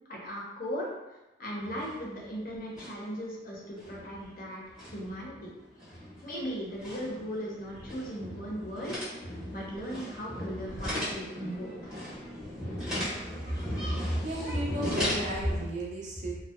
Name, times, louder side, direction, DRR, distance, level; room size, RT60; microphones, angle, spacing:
voice 1, 0.1-0.9 1.4-4.6 4.9-5.5 6.2-12.0 12.6-12.7, equal, 50° left, -4 dB, 0.5 m, -38 dB
sound 1, 1.6-2.3 2.6-3.1 3.5-15.7, equal, 5° right, 0.7 m, -38 dB
voice 2, 13.9-16.4, right 1 dB, 40° right, -3 dB, 0.5 m, -32 dB
2.6 x 2.0 x 2.3 m, 1.0 s
head